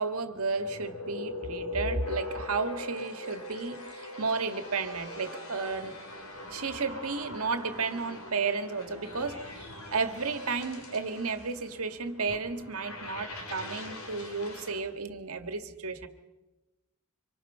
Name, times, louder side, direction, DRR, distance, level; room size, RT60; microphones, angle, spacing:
voice 1, 0.0-6.0 6.5-16.1, right 4 dB, 75° right, 8 dB, 1.7 m, -33 dB
sound 1, 0.6-14.8, left 2 dB, 65° left, 3.2 m, -41 dB
25.5 x 24.5 x 5.5 m, 1.1 s
head